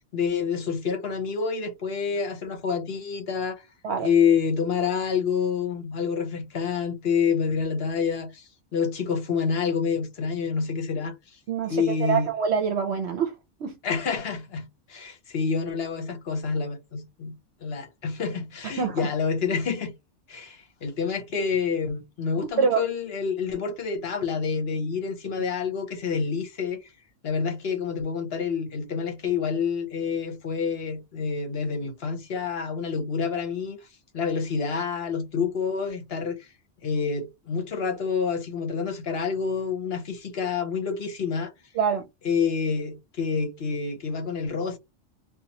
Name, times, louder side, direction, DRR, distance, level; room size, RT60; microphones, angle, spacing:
voice 1, 0.1-3.6 4.0-11.1 11.7-12.3 13.8-17.3 17.6-19.9 20.3-26.8 27.2-33.8 34.1-36.4 36.8-41.5 42.2-44.8, left 6 dB, 60° left, 0.9 m, -28 dB
voice 2, 11.5-13.3 13.6-13.7 18.8-19.1 22.6-22.8 41.7-42.0, right 6 dB, 65° right, 0.9 m, -25 dB
2.8 x 2.3 x 3.9 m
omnidirectional pair, 1.3 m